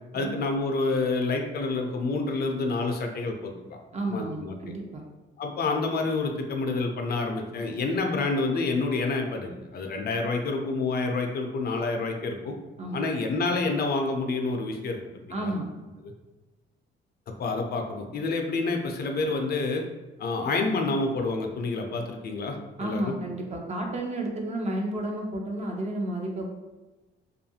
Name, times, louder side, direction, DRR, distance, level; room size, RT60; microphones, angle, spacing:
voice 1, 0.1-3.8 4.1-4.6 5.4-12.5 12.9-15.0 15.4-15.5 16.0-16.1 17.3-19.8 20.2-23.1, left 3 dB, 55° left, 3 dB, 0.4 m, -28 dB
voice 2, 3.9-5.0 12.8-13.1 15.3-15.7 22.8-26.5, right 1 dB, 35° right, 1 dB, 0.6 m, -31 dB
2.6 x 2.4 x 2.7 m, 1.2 s
cardioid pair, 90°, 20 cm